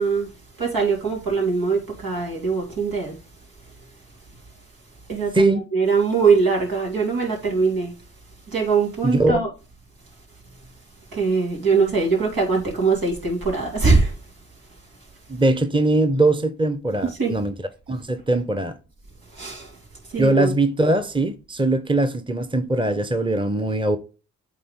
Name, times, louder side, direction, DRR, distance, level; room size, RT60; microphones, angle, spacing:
voice 1, 0.0-3.2 5.1-7.9 8.5-9.5 11.1-14.2 17.0-17.4 19.3-19.8 20.1-20.5, right 4 dB, 75° right, 3.0 m, -22 dB
voice 2, 9.0-9.4 15.3-17.5 17.9-18.7 20.2-24.0, right 2 dB, 15° right, 1.0 m, -21 dB
8.5 x 3.9 x 3.7 m
supercardioid pair, 45°, 35 cm